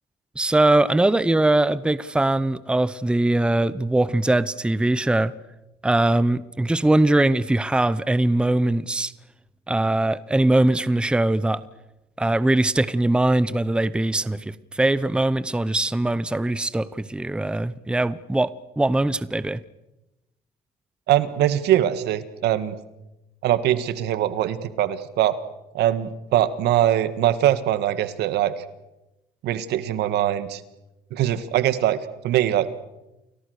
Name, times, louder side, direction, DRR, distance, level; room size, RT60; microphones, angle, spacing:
voice 1, 0.4-5.3 5.8-9.1 9.7-11.6 12.2-19.6, right 2 dB, 5° right, 16 dB, 0.8 m, -21 dB
voice 2, 21.1-22.8 23.4-25.4 25.7-28.5 29.4-30.6 31.1-32.0 32.2-32.7, right 12 dB, 80° right, 13 dB, 1.7 m, -22 dB
29.5 x 22.0 x 6.6 m, 0.96 s
cardioid pair, 110°, 17 cm